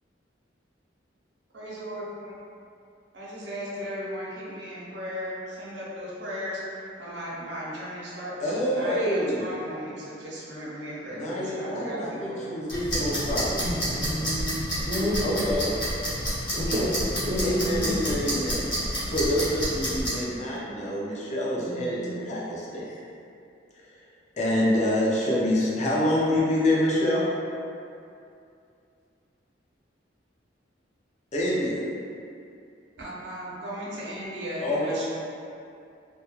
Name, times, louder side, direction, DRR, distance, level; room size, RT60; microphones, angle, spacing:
voice 1, 1.5-2.3 3.1-12.5 33.0-35.1, equal, 70° right, -7 dB, 0.5 m, -36 dB
voice 2, 8.4-9.5 11.1-13.6 15.2-15.6 17.4-23.0 24.4-27.2 31.3-31.8 34.6-35.1, left 1 dB, 40° left, -6 dB, 0.5 m, -26 dB
sound 1, 12.7-20.1, equal, 90° left, 0.9 m, -29 dB
voice 3, 13.6-15.4 16.5-17.0 17.3-18.0 21.6-22.3, equal, 25° right, -10 dB, 0.4 m, -30 dB
2.2 x 2.1 x 2.9 m, 2.5 s
head